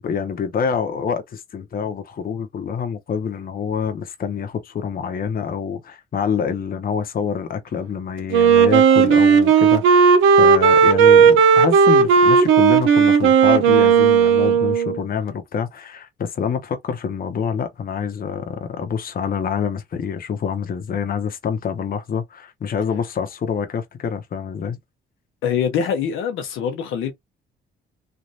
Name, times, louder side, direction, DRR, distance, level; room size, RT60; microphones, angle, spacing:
voice 1, 0.0-24.8, left 7 dB, 45° left, 0.9 m, -26 dB
Wind instrument woodwind instrument, 8.3-15.0, right 6 dB, 85° right, 0.8 m, -14 dB
voice 2, 25.4-27.1, left 7 dB, 85° left, 0.9 m, -23 dB
3.2 x 2.6 x 2.7 m
cardioid pair, 90°, 20 cm